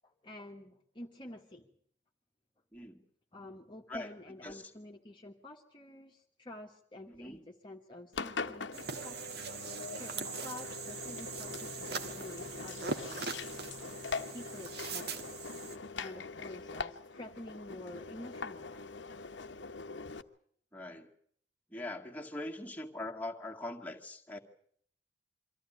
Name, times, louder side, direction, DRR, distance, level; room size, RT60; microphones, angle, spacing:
voice 1, 0.0-1.7 3.3-13.4 14.3-15.3 16.0-19.2, left 1 dB, 25° left, 1 dB, 1.5 m, -49 dB
voice 2, 2.7-3.1 3.9-4.1 4.4-4.7 7.1-7.4 20.7-21.1 21.7-24.4, left 2 dB, 10° left, 0 dB, 2.0 m, -42 dB
Engine, 8.1-20.2, left 4 dB, 80° left, 1.1 m, -42 dB
sound 1, 8.7-15.8, right 4 dB, 60° right, 2.0 m, -41 dB
24.5 x 14.5 x 9.8 m, 0.64 s
head